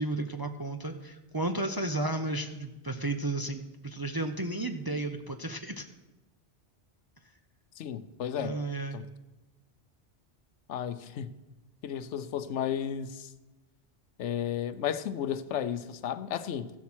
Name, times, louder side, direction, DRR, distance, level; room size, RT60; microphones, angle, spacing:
voice 1, 0.0-5.9 8.4-9.0, right 2 dB, 30° right, 0.5 m, -33 dB
voice 2, 7.8-8.6 8.9-9.0 10.7-11.3 11.8-13.3 14.2-16.7, left 9 dB, 80° left, 1.0 m, -33 dB
15.0 x 7.3 x 6.2 m
omnidirectional pair, 1.2 m